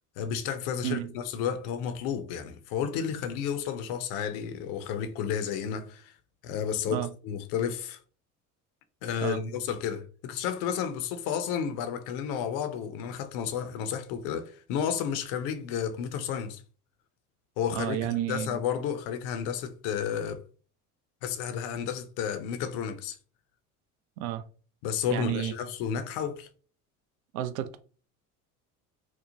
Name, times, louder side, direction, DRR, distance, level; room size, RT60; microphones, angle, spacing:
voice 1, 0.2-6.2 6.4-8.0 9.0-16.6 17.6-20.4 21.2-23.2 24.8-26.5, left 8 dB, 50° left, 0.5 m, -32 dB
voice 2, 0.8-1.1 6.9-7.1 9.2-9.4 17.7-18.6 24.2-24.5 25.1-25.5 27.3-27.8, right 14 dB, 60° right, 0.5 m, -31 dB
2.9 x 2.0 x 2.6 m
figure-of-eight pair, 65°, 46 cm